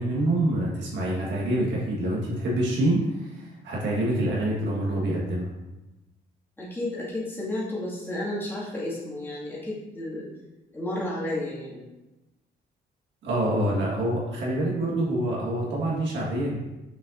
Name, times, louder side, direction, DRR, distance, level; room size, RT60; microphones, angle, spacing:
voice 1, 0.0-5.5 13.2-16.6, right 1 dB, 75° right, -5 dB, 1.7 m, -26 dB
voice 2, 6.6-10.3 10.7-11.9, left 1 dB, 10° left, -7 dB, 2.2 m, -32 dB
7.0 x 5.1 x 2.6 m, 1.0 s
cardioid pair, 115°, 18 cm